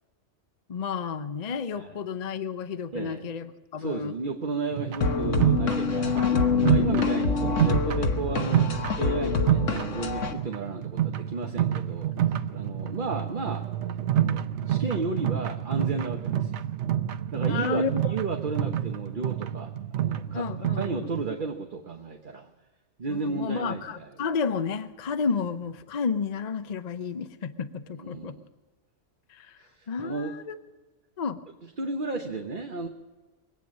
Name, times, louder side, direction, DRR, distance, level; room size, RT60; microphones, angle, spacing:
voice 1, 0.7-4.1 12.7-12.8 17.4-18.0 20.3-21.1 23.1-28.3 29.3-29.5 29.9-30.6 31.2-31.4, left 5 dB, 40° left, 10 dB, 0.7 m, -31 dB
voice 2, 3.8-6.3 6.6-8.7 9.0-13.6 14.1-16.5 17.3-20.5 20.8-22.5 23.0-24.0 28.0-28.4 29.6-30.3 31.8-32.9, right 4 dB, 45° right, 3 dB, 1.2 m, -33 dB
sound 1, 4.7-21.3, right 11 dB, 70° right, 1.0 m, -28 dB
sound 2, 5.0-10.3, left 5 dB, 80° left, 1.5 m, -26 dB
23.0 x 9.0 x 6.4 m, 1.2 s
omnidirectional pair, 1.3 m